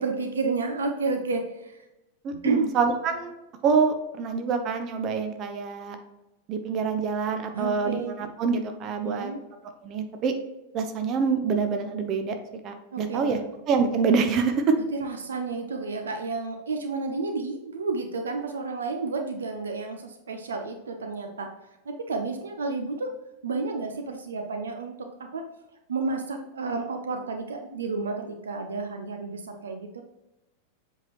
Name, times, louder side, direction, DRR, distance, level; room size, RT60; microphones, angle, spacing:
voice 1, 0.0-1.8 2.4-2.7 7.5-8.2 9.0-9.4 12.9-13.4 14.8-21.5 21.9-23.2 23.4-25.4 25.9-30.0, right 3 dB, 70° right, 5 dB, 0.7 m, -31 dB
voice 2, 2.2-3.3 3.6-6.0 6.5-9.3 9.8-10.3 10.7-12.4 12.6-13.4 13.7-14.7, right 5 dB, 35° right, 6 dB, 0.8 m, -26 dB
7.6 x 4.8 x 3.0 m, 0.96 s
figure-of-eight pair, 90°, 0 cm